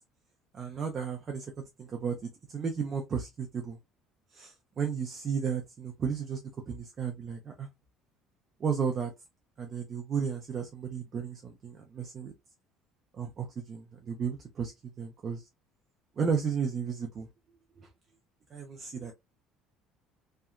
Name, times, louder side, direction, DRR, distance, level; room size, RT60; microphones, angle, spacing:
voice 1, 0.5-1.5 1.8-2.2 2.5-3.8 4.3-7.7 8.6-9.1 9.6-12.3 13.1-14.7 15.0-15.4 16.2-17.3 17.8-17.9 18.5-19.1, right 6 dB, 30° right, 0.4 m, -33 dB
2.8 x 2.2 x 2.4 m
cardioid pair, 170°, 0 cm